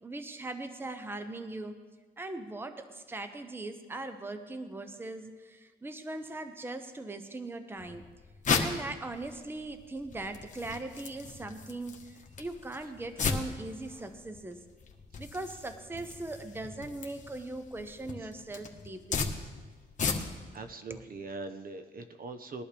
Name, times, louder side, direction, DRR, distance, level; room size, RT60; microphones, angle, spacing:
voice 1, 0.0-1.8 2.2-8.1 8.6-14.6 15.2-19.3 20.9-21.0, right 2 dB, 10° right, 8 dB, 0.8 m, -40 dB
sound 1, 7.8-20.6, left 5 dB, 40° left, 1.5 m, -37 dB
voice 2, 20.5-22.6, right 3 dB, 45° right, 8 dB, 1.0 m, -42 dB
20.5 x 11.5 x 3.4 m, 1.4 s
cardioid pair, 90°, 20 cm